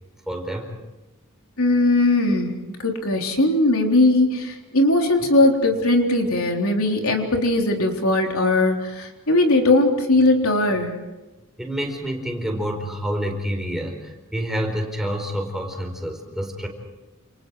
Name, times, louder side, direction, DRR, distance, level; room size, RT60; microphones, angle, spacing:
voice 1, 0.3-0.7 11.6-16.7, equal, ahead, 2 dB, 4.8 m, -28 dB
voice 2, 1.6-2.5 2.8-10.9, left 2 dB, 80° left, 2 dB, 3.8 m, -19 dB
29.0 x 29.0 x 4.8 m, 1.1 s
head